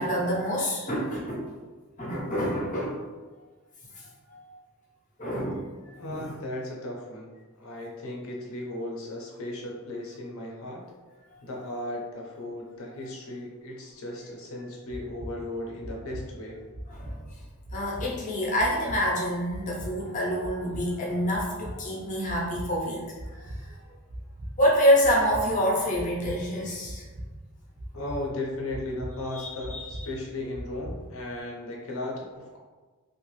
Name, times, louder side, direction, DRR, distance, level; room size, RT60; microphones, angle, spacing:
voice 1, 0.0-1.5 2.0-3.0 3.9-4.6 5.2-5.7 6.0-6.3 16.9-17.2 17.7-23.7 24.6-27.0 29.3-30.1, equal, 35° left, -4 dB, 0.6 m, -27 dB
voice 2, 6.0-7.3 7.6-10.8 11.4-16.6 27.9-32.6, left 1 dB, 70° left, -1 dB, 0.7 m, -36 dB
sound 1, 14.9-31.3, right 1 dB, 55° right, 0.5 m, -42 dB
2.8 x 2.3 x 3.1 m, 1.3 s
head